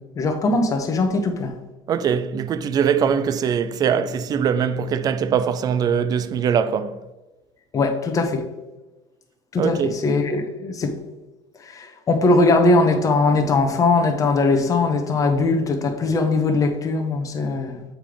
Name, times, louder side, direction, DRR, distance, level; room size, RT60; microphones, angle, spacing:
voice 1, 0.0-1.5 7.7-8.4 9.5-10.9 11.7-17.8, left 3 dB, 25° left, 0.9 m, -20 dB
voice 2, 1.9-7.0 9.6-9.9, right 7 dB, 30° right, 0.4 m, -22 dB
7.5 x 3.4 x 5.0 m
cardioid pair, 145°, 13 cm